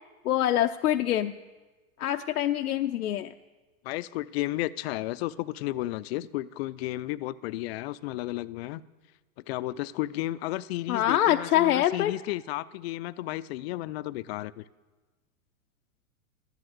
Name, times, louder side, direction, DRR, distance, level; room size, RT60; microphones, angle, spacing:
voice 1, 0.2-1.3 2.0-3.3 10.9-12.1, left 12 dB, 85° left, 6 dB, 0.7 m, -25 dB
voice 2, 3.8-8.8 9.5-14.6, left 16 dB, 45° left, 17 dB, 0.5 m, -33 dB
13.0 x 10.5 x 8.1 m, 1.3 s
hypercardioid pair, 120°, 43 cm